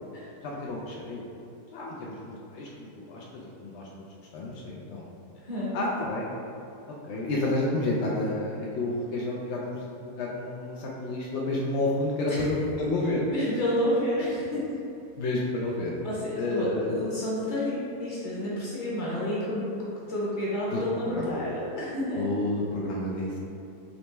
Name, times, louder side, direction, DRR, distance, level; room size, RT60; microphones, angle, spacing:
voice 1, 0.4-1.2 1.7-3.9 4.3-5.0 5.7-6.3 7.0-9.9 10.2-13.2 15.2-15.9 16.4-16.9 20.7-21.4 22.1-23.4, left 2 dB, 85° left, -4 dB, 0.6 m, -30 dB
voice 2, 5.4-5.8 12.3-12.5 13.3-14.9 16.0-22.3, left 1 dB, 35° left, -7 dB, 1.0 m, -30 dB
4.0 x 3.0 x 3.3 m, 2.7 s
omnidirectional pair, 1.7 m